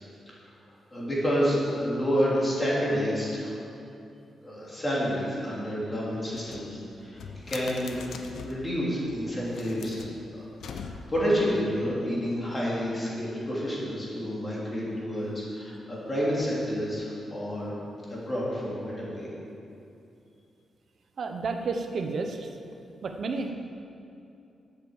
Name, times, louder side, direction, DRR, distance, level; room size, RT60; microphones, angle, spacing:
voice 1, 0.9-3.5 4.4-10.0 10.4-10.5 10.7-17.7 18.1-19.3, equal, 20° left, -6 dB, 3.5 m, -29 dB
sound 1, 6.3-8.7 9.4-11.3, left 5 dB, 85° left, 0.9 m, -42 dB
voice 2, 21.2-22.5 23.0-23.5, right 4 dB, 45° right, 5 dB, 1.0 m, -31 dB
12.5 x 9.0 x 7.4 m, 2.7 s
wide cardioid pair, 180°, 0 cm